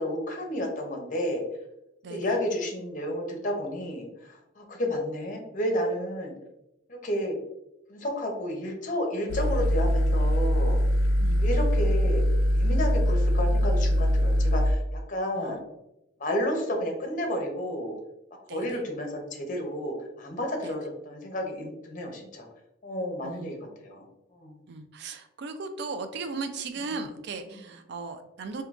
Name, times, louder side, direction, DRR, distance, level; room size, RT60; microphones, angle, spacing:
voice 1, 0.0-1.4 2.1-6.3 6.9-7.4 7.9-10.8 11.4-12.2 12.5-15.6 16.2-17.9 18.5-22.5 22.8-24.0 24.3-24.6, left 1 dB, 40° left, 2 dB, 0.6 m, -31 dB
sound 1, 9.3-14.7, equal, 75° left, 0.3 m, -23 dB
voice 2, 11.2-11.7 15.3-15.6 18.5-18.8 20.6-20.8 23.2-23.6 24.7-28.6, right 4 dB, 55° right, 8 dB, 0.3 m, -37 dB
3.6 x 2.7 x 2.3 m, 0.88 s
head